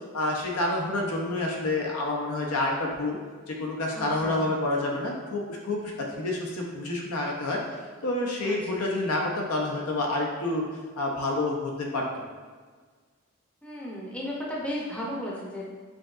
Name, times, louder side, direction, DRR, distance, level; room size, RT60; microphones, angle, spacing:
voice 1, 0.1-3.2 3.5-7.6 8.0-10.6 11.0-12.0, left 2 dB, 80° left, -1 dB, 0.7 m, -28 dB
voice 2, 3.9-4.4 8.4-8.8 13.6-15.7, left 1 dB, 5° left, -5 dB, 0.6 m, -35 dB
5.0 x 3.7 x 2.5 m, 1.5 s
head